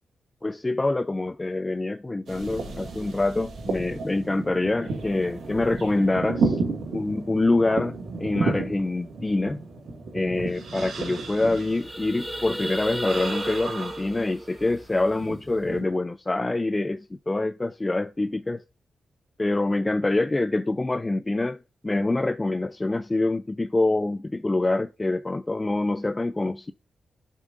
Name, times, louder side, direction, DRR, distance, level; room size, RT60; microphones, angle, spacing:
voice 1, 0.4-6.6 6.9-9.6 10.1-18.6 19.4-26.7, left 2 dB, 20° left, 0.3 m, -25 dB
sound 1, 2.3-14.7 15.1-15.9, right 3 dB, 80° right, 2.8 m, -33 dB
sound 2, 10.5-10.6 10.8-11.0 11.4-15.7, equal, 10° right, 1.9 m, -35 dB
11.0 x 6.4 x 2.5 m
cardioid pair, 95°, 0 cm